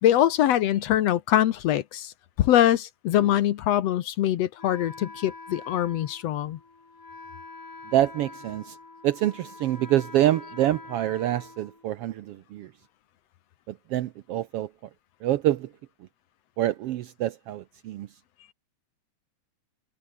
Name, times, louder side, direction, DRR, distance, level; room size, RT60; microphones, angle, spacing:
voice 1, 0.0-2.1 2.4-6.6, left 12 dB, 65° left, 1.8 m, -23 dB
Wind instrument woodwind instrument, 4.6-12.3, left 3 dB, 45° left, 6.8 m, -45 dB
voice 2, 7.9-8.7 9.0-12.7 13.7-14.7 15.2-15.7 16.6-18.1, right 13 dB, 85° right, 1.3 m, -26 dB
omnidirectional pair, 3.7 m